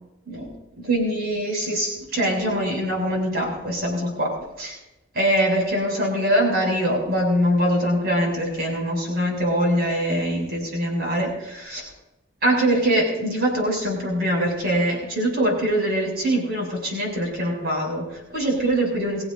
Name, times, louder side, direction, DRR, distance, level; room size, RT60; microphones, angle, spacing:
voice 1, 0.8-4.3 4.6-4.8 5.1-11.9 12.4-19.2, right 1 dB, 50° right, -1 dB, 6.7 m, -23 dB
25.5 x 15.5 x 2.6 m, 0.96 s
head